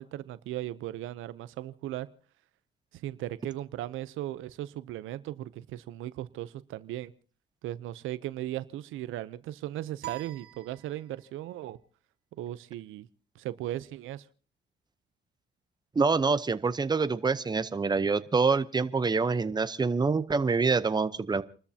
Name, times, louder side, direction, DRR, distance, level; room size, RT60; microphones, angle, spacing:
voice 1, 0.0-2.1 2.9-7.1 7.6-11.8 12.4-13.1 13.4-14.2, right 14 dB, 90° right, 0.7 m, -37 dB
sound 1, 10.0-11.5, right 14 dB, 55° right, 1.7 m, -43 dB
voice 2, 15.9-21.4, right 4 dB, 20° right, 0.8 m, -26 dB
29.5 x 13.5 x 2.8 m
cardioid pair, 90°, 20 cm